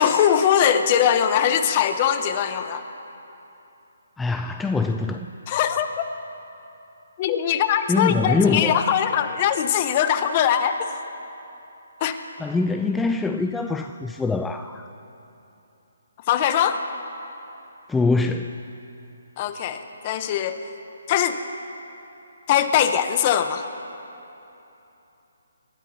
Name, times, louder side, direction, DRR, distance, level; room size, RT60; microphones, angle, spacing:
voice 1, 0.0-2.8 5.5-6.0 7.2-10.8 12.0-12.2 16.3-16.8 19.4-20.6 21.1-21.4 22.5-23.7, left 9 dB, 35° left, 9 dB, 0.9 m, -21 dB
voice 2, 4.2-5.3 7.9-8.8 12.4-14.9 17.9-18.6, left 3 dB, 5° left, 6 dB, 0.3 m, -23 dB
27.0 x 13.5 x 2.8 m, 3.0 s
figure-of-eight pair, 145°, 0 cm